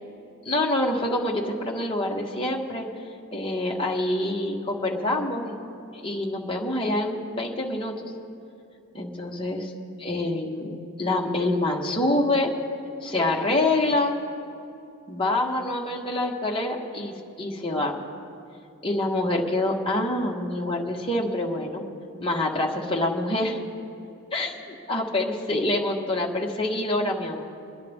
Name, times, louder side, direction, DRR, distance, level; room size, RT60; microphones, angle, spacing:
voice 1, 0.4-2.9 3.3-5.5 5.9-7.9 8.9-9.7 10.0-10.7 11.0-12.5 13.0-14.2 15.1-18.0 18.8-21.8 22.2-23.6 24.3-27.5, left 1 dB, 25° left, -2 dB, 1.4 m, -26 dB
24.0 x 10.5 x 3.6 m, 2.7 s
head